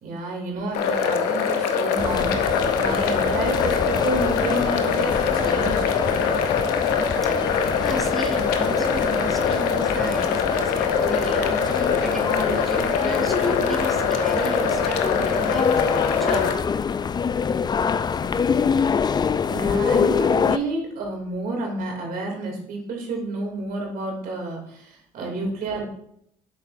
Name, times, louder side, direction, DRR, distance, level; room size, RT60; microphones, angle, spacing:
voice 1, 0.0-5.8 19.5-25.9, right 2 dB, 65° right, 0 dB, 2.7 m, -30 dB
sound 1, 0.7-16.5, left 6 dB, 85° left, 0.8 m, -23 dB
sound 2, 2.0-20.6, left 6 dB, 25° left, 0.3 m, -26 dB
voice 2, 7.2-16.5, right 1 dB, ahead, 1 dB, 1.1 m, -34 dB
8.3 x 7.1 x 2.6 m, 0.72 s
supercardioid pair, 70°, 16 cm